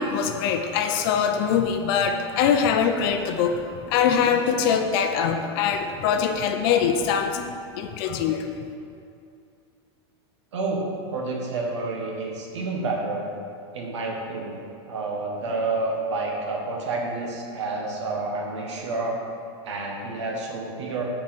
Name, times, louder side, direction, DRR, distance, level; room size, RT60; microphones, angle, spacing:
voice 1, 0.0-8.7, left 7 dB, 55° left, 6 dB, 0.5 m, -23 dB
voice 2, 10.5-13.3 13.7-14.6 14.8-19.2 19.6-21.0, right 3 dB, 90° right, 0 dB, 1.2 m, -29 dB
5.4 x 4.7 x 5.3 m, 2.5 s
supercardioid pair, 125°, 15 cm